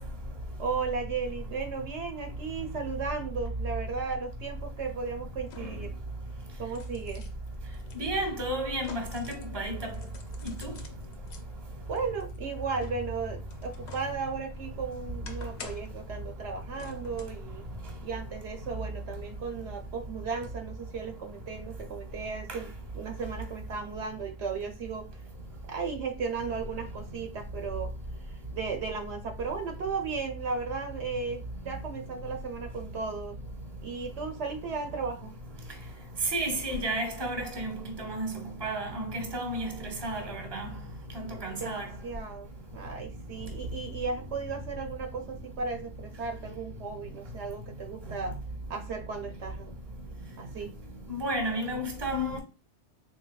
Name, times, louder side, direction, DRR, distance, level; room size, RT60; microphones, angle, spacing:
voice 1, 0.6-6.0 6.6-7.2 11.9-17.7 18.0-25.1 25.7-27.9 28.3-33.4 33.8-35.3 41.6-48.4 48.7-49.7 50.4-50.7, right 5 dB, 75° right, 1.0 m, -35 dB
sound 1, 4.1-4.2 5.4-5.9 6.4-9.5 9.9-11.4 12.0-14.1 14.5-16.0 16.7-17.4 17.9-18.0, left 5 dB, 70° left, 0.9 m, -49 dB
voice 2, 8.0-9.2 9.5-9.9 10.6-10.7 36.3-40.7 41.1-41.8 51.1-52.4, right 1 dB, 25° right, 0.9 m, -32 dB
3.9 x 3.0 x 2.2 m
omnidirectional pair, 1.2 m